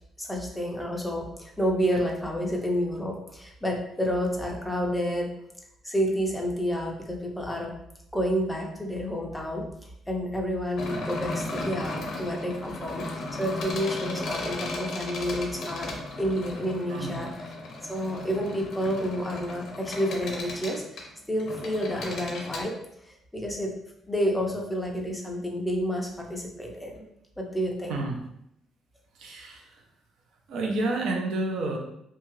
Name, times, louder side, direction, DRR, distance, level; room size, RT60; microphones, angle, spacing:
voice 1, 0.2-5.3 5.8-7.7 8.1-17.3 17.9-22.8 23.0-23.7 24.1-27.0 27.4-28.0, equal, 5° left, 0 dB, 0.4 m, -30 dB
sound 1, 10.8-22.6, left 2 dB, 55° left, 0.5 m, -36 dB
voice 2, 16.9-17.2 27.9-28.2 29.1-29.8 30.5-31.8, right 2 dB, 70° right, 1 dB, 0.4 m, -30 dB
2.7 x 2.3 x 3.0 m, 0.77 s
cardioid pair, 175°, 0 cm